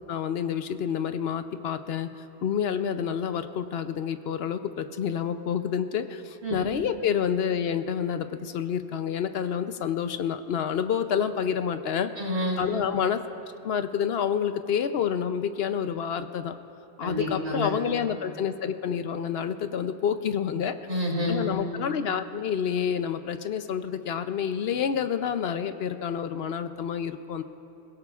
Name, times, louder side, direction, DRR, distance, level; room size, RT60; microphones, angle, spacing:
voice 1, 0.1-2.1 2.4-12.1 12.6-16.6 17.0-20.8 21.3-27.4, left 8 dB, 70° left, 10 dB, 0.8 m, -28 dB
voice 2, 12.2-12.6 17.0-17.7 20.9-21.4, left 1 dB, 70° right, -3 dB, 3.0 m, -28 dB
28.0 x 16.5 x 2.4 m, 2.9 s
omnidirectional pair, 1.1 m